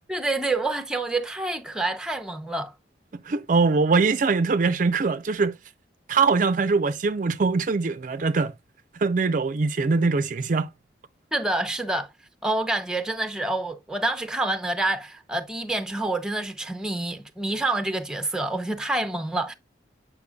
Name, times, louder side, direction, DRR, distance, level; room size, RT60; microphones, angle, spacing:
voice 1, 0.1-2.7 11.3-12.1 12.4-19.5, right 2 dB, 5° right, 0.6 m, -27 dB
voice 2, 3.3-5.5 6.1-8.5 9.0-10.7, right 4 dB, 45° right, 0.4 m, -22 dB
8.3 x 5.6 x 2.2 m
head